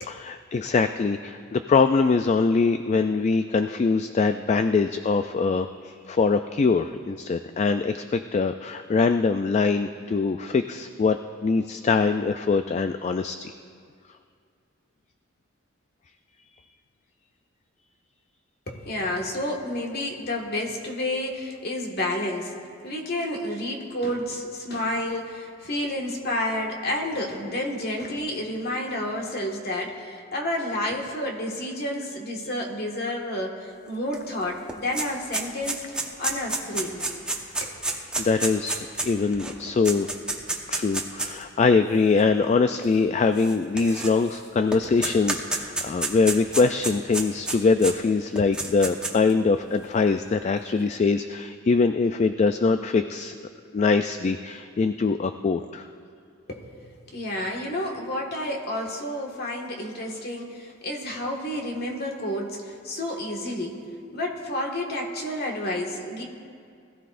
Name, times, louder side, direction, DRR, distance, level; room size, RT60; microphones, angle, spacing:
voice 1, 0.0-13.5 38.2-40.1 40.7-53.3 53.7-55.9, left 4 dB, 35° left, 8 dB, 0.3 m, -23 dB
voice 2, 18.7-22.5 22.8-37.0 37.6-37.7 56.5-63.8 64.1-66.2, left 1 dB, 55° left, 0 dB, 1.7 m, -30 dB
sound 1, 34.1-34.2 34.5-41.4 42.2-42.3 43.4-44.4 44.7-47.9 48.4-49.3, right 2 dB, 5° right, 1.0 m, -29 dB
20.5 x 14.5 x 2.5 m, 2.3 s
head